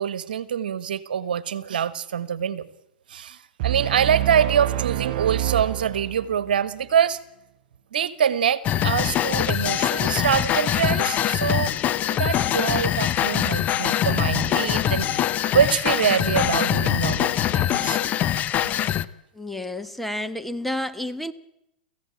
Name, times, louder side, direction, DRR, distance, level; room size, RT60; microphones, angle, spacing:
voice 1, 0.0-2.7 3.1-7.2 7.9-11.8 12.1-15.1 15.5-18.0, right 8 dB, 70° right, 1.4 m, -24 dB
sound 1, 3.6-6.6, right 16 dB, 55° right, 0.8 m, -27 dB
sound 2, 8.6-19.0, left 11 dB, 30° left, 0.9 m, -23 dB
voice 2, 19.3-21.3, left 1 dB, 5° left, 1.2 m, -30 dB
28.0 x 15.5 x 8.9 m
hypercardioid pair, 105°, 5 cm